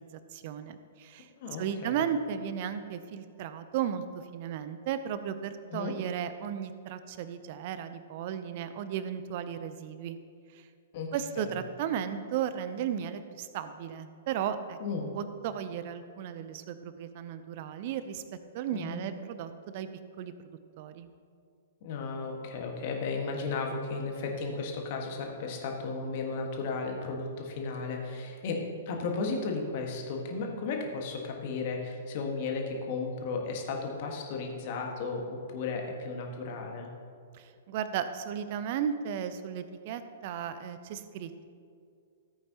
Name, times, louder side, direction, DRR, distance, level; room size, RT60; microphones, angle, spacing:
voice 1, 0.0-1.3 1.6-10.2 10.5-10.7 11.1-14.8 15.1-18.2 18.5-19.9 20.2-21.1 37.3-41.4, right 8 dB, 45° right, 11 dB, 0.6 m, -35 dB
voice 2, 14.8-15.1 18.7-19.0 21.8-36.9, left 4 dB, 45° left, 1 dB, 1.6 m, -34 dB
14.5 x 8.5 x 3.0 m, 2.3 s
figure-of-eight pair, 110°, 0 cm